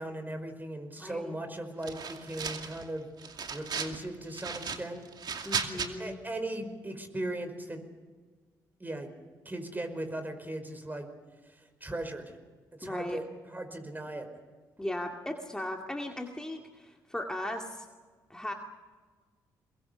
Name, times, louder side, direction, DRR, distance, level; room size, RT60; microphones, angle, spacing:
voice 1, 0.0-3.1 3.5-5.0 6.0-7.8 8.8-9.1 9.4-11.1 11.4-12.4 12.7-14.3, right 1 dB, 20° right, 7 dB, 5.1 m, -38 dB
voice 2, 0.9-1.3 5.5-6.2 12.8-13.2 14.8-17.9 18.3-18.5, left 1 dB, 10° left, 2 dB, 2.2 m, -37 dB
sound 1, 1.8-2.8 3.2-4.0 4.3-5.9, right 6 dB, 55° right, 2.5 m, -35 dB
23.5 x 21.5 x 7.0 m, 1.5 s
supercardioid pair, 60°, 9 cm